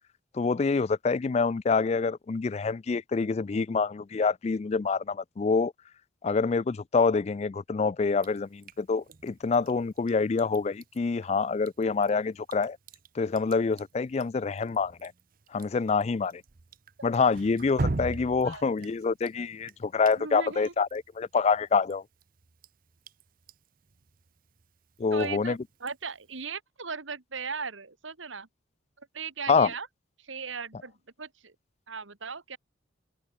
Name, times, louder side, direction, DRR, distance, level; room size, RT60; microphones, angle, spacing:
voice 1, 0.3-5.7 6.2-12.8 13.2-15.1 15.5-16.4 17.0-22.0 25.0-25.6 29.5-29.7, left 4 dB, 35° left, 0.3 m, -26 dB
Drip, 8.2-26.4, right 2 dB, 45° right, 0.8 m, -42 dB
voice 2, 20.2-20.7 25.1-28.5 29.0-29.9 30.2-30.9 31.2-31.5 31.9-32.6, right 5 dB, 80° right, 2.0 m, -38 dB
head